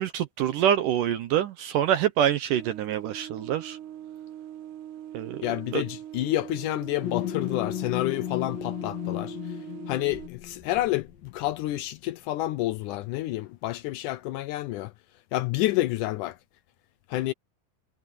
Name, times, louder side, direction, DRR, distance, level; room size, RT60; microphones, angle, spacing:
voice 1, 0.0-3.8 5.1-5.4 5.7-5.8, right 10 dB, 70° right, 2.2 m, -25 dB
sound 1, 2.5-10.3, right 11 dB, 90° right, 4.0 m, -42 dB
voice 2, 5.4-9.4 9.9-14.9 15.3-16.4 17.1-17.3, left 16 dB, 90° left, 1.7 m, -29 dB
sound 2, 7.0-11.8, left 15 dB, 65° left, 3.8 m, -35 dB
omnidirectional pair, 4.6 m